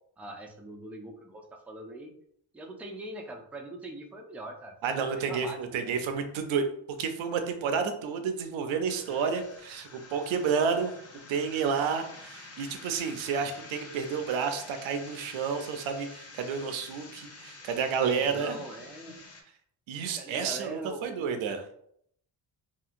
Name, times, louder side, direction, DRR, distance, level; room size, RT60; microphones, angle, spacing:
voice 1, 0.2-2.1 2.5-6.1 18.0-19.2 20.2-21.4, right 1 dB, 5° right, 2 dB, 0.4 m, -42 dB
voice 2, 4.8-6.6 7.0-10.9 11.3-18.6 19.9-21.6, right 6 dB, 85° right, 7 dB, 0.6 m, -30 dB
sound 1, 8.9-19.4, left 3 dB, 35° left, 0.7 m, -48 dB
2.8 x 2.8 x 2.5 m, 0.69 s
cardioid pair, 80°, 46 cm